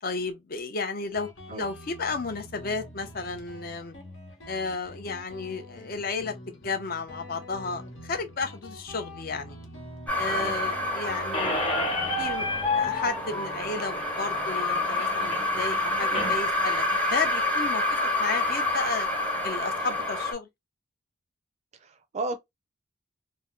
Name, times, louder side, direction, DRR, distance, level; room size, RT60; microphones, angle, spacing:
voice 1, 0.0-4.0 4.5-9.6 10.2-11.6 12.2-12.5 12.7-19.1 19.4-20.5, left 4 dB, 45° left, 0.6 m, -33 dB
Guitar, 1.1-18.3, left 1 dB, 70° left, 1.1 m, -46 dB
sound 1, 10.1-20.3, left 1 dB, 5° left, 0.8 m, -28 dB
Squeak, 11.3-16.3, left 3 dB, 30° left, 1.0 m, -30 dB
voice 2, 21.8-22.4, right 2 dB, 35° right, 0.3 m, -33 dB
2.7 x 2.1 x 3.5 m
head